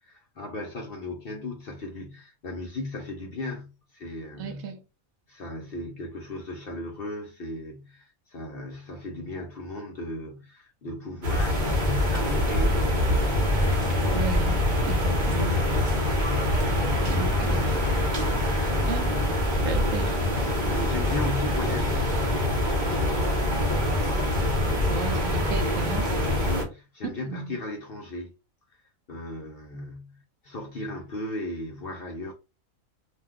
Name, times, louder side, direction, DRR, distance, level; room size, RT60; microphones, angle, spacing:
voice 1, 0.0-4.7 5.3-13.5 20.5-22.1 22.7-23.4 26.4-28.3 28.7-28.8 29.1-30.2 30.4-32.3, left 2 dB, 55° left, 0.7 m, -36 dB
voice 2, 4.4-4.8 14.1-15.6 17.0-17.8 18.7-19.1 19.5-20.2 23.3-23.5 24.9-26.1 27.2-27.6, right 6 dB, 75° right, 0.9 m, -35 dB
sound 1, 11.2-26.6, left 1 dB, 40° right, 0.9 m, -24 dB
2.5 x 2.2 x 3.5 m
omnidirectional pair, 1.4 m